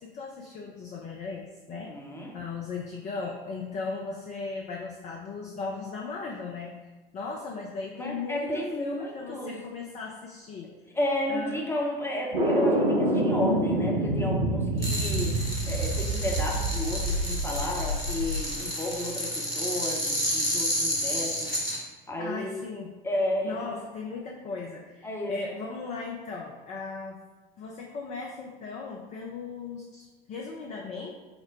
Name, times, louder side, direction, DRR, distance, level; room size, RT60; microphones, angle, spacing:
voice 1, 0.0-1.9 2.3-6.7 7.1-10.7 11.3-11.6 22.2-22.9 23.4-27.2 27.6-31.1, left 4 dB, 25° left, 0 dB, 0.5 m, -37 dB
voice 2, 1.7-2.3 7.9-9.5 10.9-22.7 23.0-23.7 25.0-25.4, left 1 dB, 10° left, -2 dB, 0.8 m, -32 dB
sound 1, 12.3-18.4, right 1 dB, 65° right, 1.3 m, -27 dB
sound 2, 14.8-21.8, equal, 90° left, 0.9 m, -31 dB
5.9 x 2.1 x 3.8 m, 1.2 s
figure-of-eight pair, 75°, 29 cm